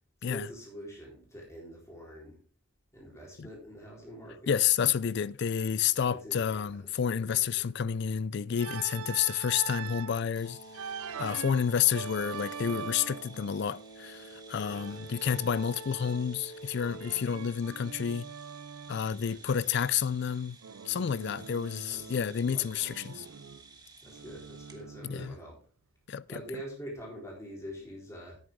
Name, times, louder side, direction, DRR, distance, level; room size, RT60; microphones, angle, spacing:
voice 1, 0.2-2.4 2.9-4.6 6.1-7.7 14.6-15.1 19.1-20.0 21.9-23.0 24.0-25.6 26.3-28.4, equal, 15° left, 3.8 m, -46 dB
voice 2, 4.5-10.9 11.2-18.3 18.9-20.6 20.9-23.1 25.0-25.3 26.1-26.4, left 8 dB, 50° left, 0.4 m, -30 dB
Organ, 8.6-10.2 10.7-13.4 14.6-16.4 16.8-19.1 20.6-22.4 22.7-25.5, right 7 dB, 75° right, 0.5 m, -43 dB
sound 1, 10.4-17.2, right 2 dB, 85° left, 2.6 m, -48 dB
sound 2, 10.4-24.8, right 5 dB, 20° right, 1.3 m, -55 dB
10.5 x 9.3 x 3.6 m
head